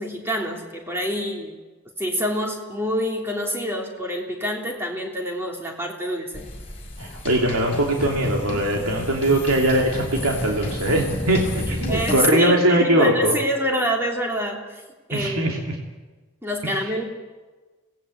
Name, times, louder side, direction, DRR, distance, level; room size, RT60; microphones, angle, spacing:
voice 1, 0.0-1.6 2.0-6.4 11.9-14.8 15.1-15.5 16.4-17.0, equal, 10° right, 1 dB, 3.2 m, -26 dB
sound 1, 6.3-12.2, left 1 dB, 25° left, 4.9 m, -31 dB
voice 2, 7.0-13.4 15.1-15.8 16.6-16.9, right 1 dB, 85° right, 0 dB, 2.9 m, -21 dB
26.5 x 18.5 x 8.6 m, 1.3 s
head